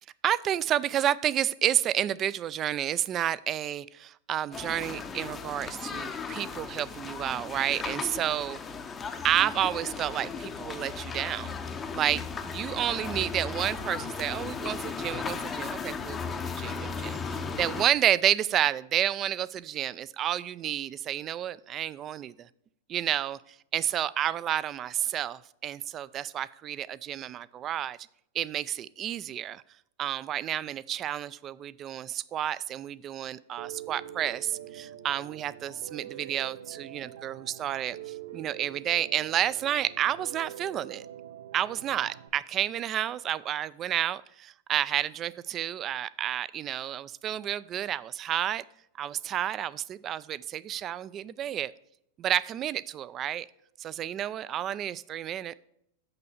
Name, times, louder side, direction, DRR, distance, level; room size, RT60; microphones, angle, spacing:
voice 1, 0.2-3.8 4.3-8.6 9.2-11.5 11.9-22.5 22.9-23.4 23.7-28.0 28.3-29.6 30.0-41.1 41.5-48.6 49.0-51.7 52.2-53.5 53.8-55.5, right 11 dB, 30° right, 19 dB, 0.3 m, -30 dB
sound 1, 4.5-17.9, left 5 dB, 15° left, 0.6 m, -36 dB
Piano, 33.6-42.3, right 10 dB, 80° right, 0.8 m, -44 dB
6.8 x 5.4 x 7.2 m, 0.73 s
supercardioid pair, 145°, 0 cm